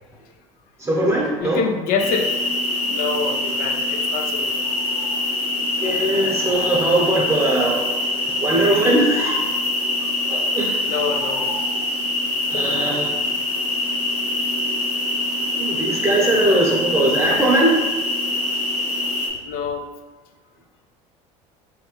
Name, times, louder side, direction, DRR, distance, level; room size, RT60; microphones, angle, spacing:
voice 1, 0.8-1.6 5.8-8.0 8.4-9.5 10.3-10.7 12.5-13.1 15.6-17.9, right 1 dB, 15° right, -3 dB, 0.9 m, -20 dB
voice 2, 1.4-2.3 2.8-4.7 10.9-11.5 19.4-19.9, left 5 dB, 60° left, 6 dB, 0.4 m, -26 dB
sound 1, 2.0-19.3, left 2 dB, 45° left, 1.1 m, -24 dB
3.2 x 2.9 x 2.9 m, 1.2 s
supercardioid pair, 85°, 17 cm